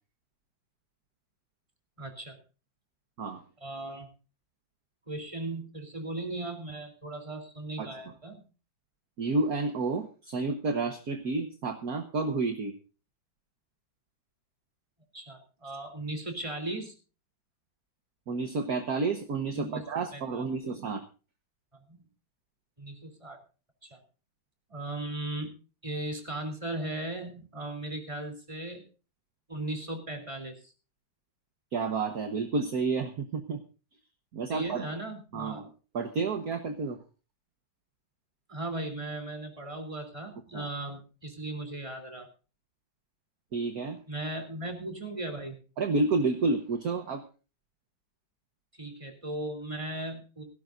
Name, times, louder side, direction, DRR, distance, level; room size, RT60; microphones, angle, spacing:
voice 1, 2.0-2.4 3.6-4.1 5.1-8.4 15.1-16.9 19.5-19.8 20.1-20.8 21.9-22.0 22.8-23.4 23.8-24.0 24.7-25.5 25.8-28.8 29.5-30.7 34.5-35.6 38.5-42.3 44.1-45.6 48.7-50.4, right 2 dB, 15° right, 5 dB, 3.4 m, -37 dB
voice 2, 9.2-12.7 18.3-21.0 31.7-33.6 34.3-34.9 35.3-35.7 35.9-37.0 40.5-40.7 43.5-44.0 45.8-47.2, right 3 dB, 50° right, 7 dB, 1.6 m, -30 dB
17.0 x 17.0 x 2.6 m, 0.34 s
omnidirectional pair, 2.2 m